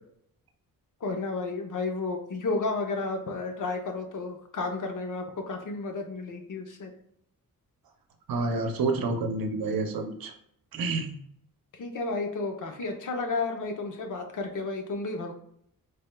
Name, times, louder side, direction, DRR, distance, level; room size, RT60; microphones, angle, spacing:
voice 1, 1.0-6.9 11.7-15.3, left 3 dB, 60° left, 4 dB, 0.7 m, -32 dB
voice 2, 8.3-10.3 10.7-11.1, right 3 dB, 75° right, 6 dB, 0.7 m, -28 dB
4.4 x 3.4 x 2.2 m, 0.69 s
wide cardioid pair, 140°, 35 cm